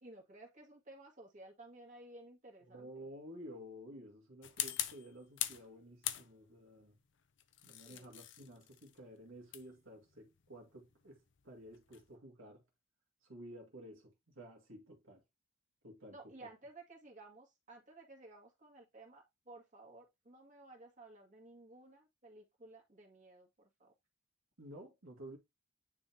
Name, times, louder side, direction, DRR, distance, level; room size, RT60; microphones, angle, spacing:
voice 1, 0.0-2.9 7.8-8.2 16.1-23.9, right 2 dB, 40° right, 2.1 m, -56 dB
voice 2, 2.6-7.0 7.6-11.2 11.4-12.6 13.2-15.2 15.8-16.2 24.6-25.4, equal, 80° right, 2.1 m, -52 dB
sound 1, 4.4-5.7 6.0-6.7 7.4-12.1, left 12 dB, 65° left, 0.6 m, -42 dB
9.5 x 3.7 x 2.9 m
head